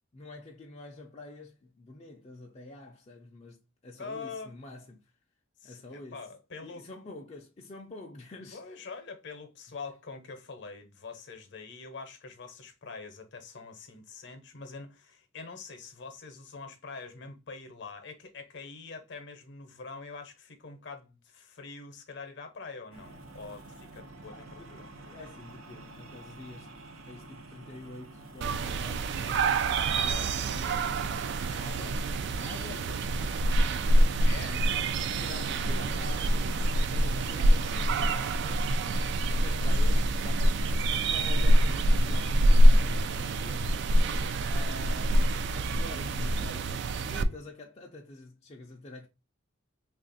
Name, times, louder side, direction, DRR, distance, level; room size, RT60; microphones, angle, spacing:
voice 1, 0.1-5.0 5.6-6.2 6.6-8.6 24.3-26.8 27.0-31.1 31.5-33.6 33.9-34.3 34.6-34.9 35.2-36.5 36.9-38.7 39.4-43.8 44.4-49.1, left 2 dB, 30° left, 0.4 m, -47 dB
voice 2, 4.0-4.5 5.6-6.8 8.5-24.9 29.8-30.2 31.6-31.8 34.2-34.6 38.8-39.2 44.1-44.4, left 4 dB, 60° left, 0.7 m, -44 dB
sound 1, 22.9-39.3, right 2 dB, 90° right, 0.7 m, -49 dB
sound 2, 28.4-47.2, right 1 dB, 55° right, 0.3 m, -25 dB
3.3 x 2.4 x 3.9 m
head